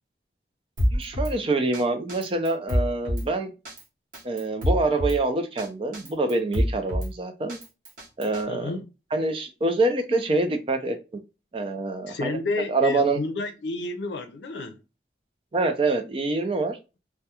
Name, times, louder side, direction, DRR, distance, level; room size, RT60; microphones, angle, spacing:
Drum kit, 0.8-1.3 1.7-1.8 2.1-3.3 3.7-3.8 4.1-5.2 5.6-5.7 5.9-7.1 7.5-8.4, equal, 50° right, 0.9 m, -26 dB
voice 1, 0.9-3.5 4.2-7.6 8.2-8.7 9.1-11.0 11.5-12.4 12.7-13.2 15.5-16.8, right 2 dB, 30° right, 0.4 m, -25 dB
voice 2, 8.5-8.9 12.1-14.8, left 3 dB, 85° left, 0.5 m, -30 dB
2.3 x 2.1 x 2.8 m
head